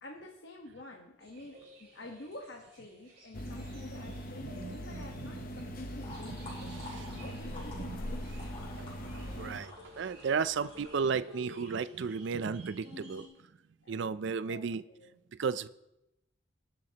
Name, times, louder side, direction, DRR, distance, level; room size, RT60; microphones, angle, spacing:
voice 1, 0.0-1.5 1.8-8.5 13.8-14.1 14.4-15.2, left 2 dB, 60° left, 0 dB, 1.2 m, -49 dB
sound 1, 1.2-13.3, equal, 50° right, 4.8 m, -54 dB
sound 2, 3.3-9.6, equal, 45° left, 0.9 m, -41 dB
voice 2, 4.4-5.3 6.4-7.2 7.9-8.0 9.0-13.3 13.9-14.8 15.4-15.7, right 5 dB, 65° right, 15 dB, 0.4 m, -34 dB
sound 3, 6.0-11.0, left 2 dB, 30° left, 4.0 m, -50 dB
20.5 x 7.6 x 2.9 m, 0.89 s
head